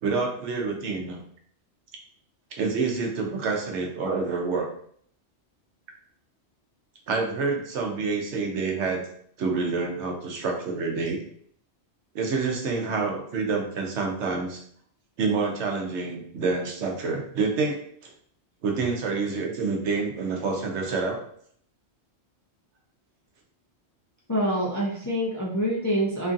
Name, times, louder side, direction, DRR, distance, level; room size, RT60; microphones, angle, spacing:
voice 1, 0.0-1.2 2.5-4.7 7.1-9.0 9.4-11.2 12.1-14.6 15.2-18.1 18.6-21.2, right 4 dB, 85° right, 1 dB, 1.0 m, -27 dB
voice 2, 24.3-26.3, equal, 30° left, -5 dB, 0.3 m, -26 dB
3.0 x 2.5 x 2.5 m, 0.62 s
omnidirectional pair, 1.2 m